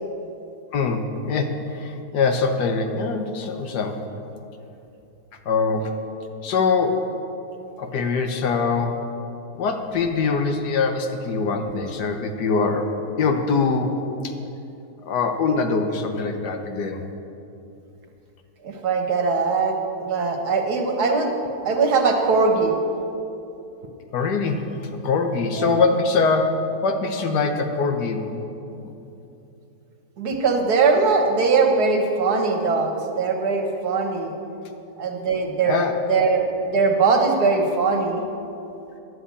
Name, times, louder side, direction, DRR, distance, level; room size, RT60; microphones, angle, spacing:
voice 1, 0.7-4.0 5.4-6.0 6.4-7.1 7.8-9.1 9.6-14.3 15.0-17.0 24.1-26.5 26.8-28.3 28.7-28.9 35.6-35.9, left 4 dB, 80° left, 5 dB, 1.6 m, -23 dB
voice 2, 18.6-21.3 21.6-22.8 25.5-25.8 30.2-34.3 35.0-35.8 36.1-38.2, right 4 dB, 70° right, 3 dB, 1.7 m, -21 dB
11.0 x 7.8 x 8.3 m, 2.8 s
omnidirectional pair, 1.8 m